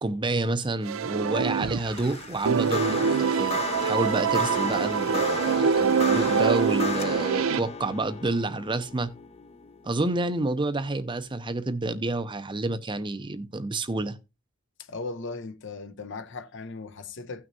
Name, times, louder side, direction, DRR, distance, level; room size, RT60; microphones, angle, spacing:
voice 1, 0.0-9.1 9.8-14.2, right 2 dB, 25° right, 0.6 m, -29 dB
sound 1, 0.9-2.1 2.5-7.6, right 6 dB, 70° right, 0.4 m, -25 dB
sound 2, 1.8-11.1, left 4 dB, 30° left, 0.6 m, -35 dB
voice 2, 14.8-17.5, left 3 dB, 60° left, 0.8 m, -37 dB
16.0 x 6.1 x 2.7 m
head